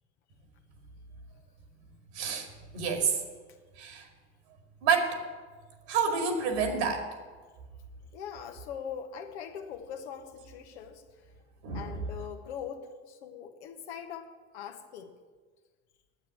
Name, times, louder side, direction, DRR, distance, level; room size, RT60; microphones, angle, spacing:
voice 1, 2.1-2.5 2.7-3.2 3.8-4.1 4.8-5.2 5.9-7.1 11.6-12.0, right 5 dB, 70° right, 4 dB, 2.3 m, -28 dB
voice 2, 8.1-11.0 11.7-15.1, left 8 dB, 75° left, 5 dB, 1.4 m, -41 dB
9.8 x 8.4 x 7.6 m, 1.4 s
hypercardioid pair, 75°, 34 cm